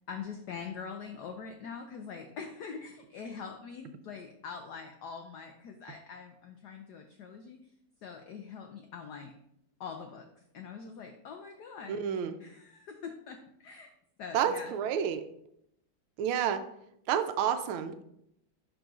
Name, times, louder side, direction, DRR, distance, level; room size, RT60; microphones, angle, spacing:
voice 1, 0.1-7.6 8.0-9.3 9.8-10.3 10.5-13.9 14.2-14.8, left 6 dB, 85° left, 5 dB, 0.9 m, -43 dB
voice 2, 11.9-12.3 14.3-15.2 16.2-16.6 17.1-18.0, right 8 dB, 80° right, 9 dB, 1.4 m, -29 dB
11.0 x 3.8 x 2.4 m, 0.76 s
omnidirectional pair, 2.4 m